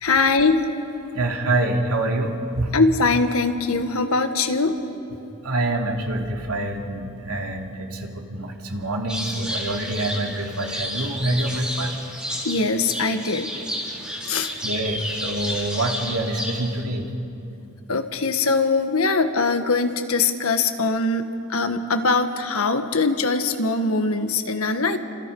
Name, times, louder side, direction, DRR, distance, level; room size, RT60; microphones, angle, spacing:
voice 1, 0.0-0.6 2.7-4.8 12.4-13.5 14.2-14.5 17.9-25.0, left 3 dB, 75° left, 7 dB, 1.5 m, -22 dB
voice 2, 1.1-2.7 5.4-12.0 14.0-14.1 14.6-17.1, right 2 dB, 90° right, 1 dB, 2.8 m, -26 dB
sound 1, 9.1-16.8, equal, 5° right, 3.9 m, -31 dB
30.0 x 26.5 x 5.5 m, 2.8 s
head